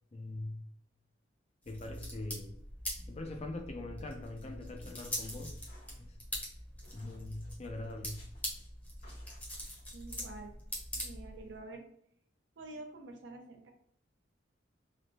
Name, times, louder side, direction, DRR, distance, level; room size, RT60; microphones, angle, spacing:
voice 1, 0.1-0.7 1.7-2.6 3.1-5.6 6.0-6.2 6.9-8.2, left 2 dB, 35° left, 0.4 m, -42 dB
sound 1, 1.6-11.6, equal, 10° left, 0.7 m, -43 dB
sound 2, 4.8-6.5 6.8-7.6 8.1-8.7 9.0-9.8, left 1 dB, 65° left, 1.4 m, -61 dB
voice 2, 9.9-10.5 11.0-11.9 12.6-13.7, right 2 dB, 75° right, 0.6 m, -47 dB
3.3 x 2.1 x 2.7 m
head